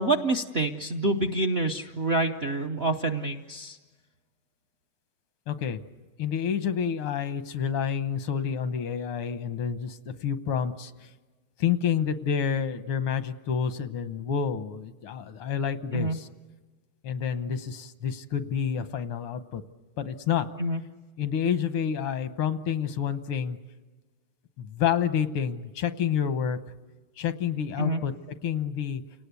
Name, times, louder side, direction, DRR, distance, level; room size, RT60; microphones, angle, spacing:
voice 1, 0.0-3.8 15.9-16.2 20.6-20.8 27.8-28.0, right 2 dB, 55° right, 6 dB, 0.7 m, -27 dB
voice 2, 5.5-5.8 6.2-10.9 11.6-16.3 17.0-19.6 20.0-20.5 21.2-23.6 24.6-26.6 27.2-28.1 28.4-29.0, left 8 dB, 85° left, 11 dB, 1.9 m, -28 dB
29.5 x 18.5 x 8.2 m, 1.3 s
omnidirectional pair, 2.4 m